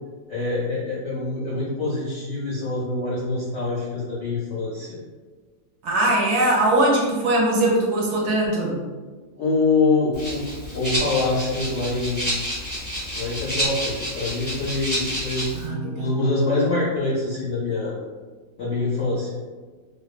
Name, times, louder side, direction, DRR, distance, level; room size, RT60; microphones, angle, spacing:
voice 1, 0.3-5.0 9.4-10.5 10.7-12.3 13.1-18.0 18.6-19.3, left 3 dB, 70° left, -8 dB, 0.7 m, -25 dB
voice 2, 5.8-8.8 15.5-16.1, right 1 dB, 70° right, -3 dB, 1.1 m, -21 dB
Rattle (instrument), 10.1-15.7, equal, 20° right, 0.6 m, -29 dB
2.8 x 2.2 x 2.3 m, 1.4 s
omnidirectional pair, 1.9 m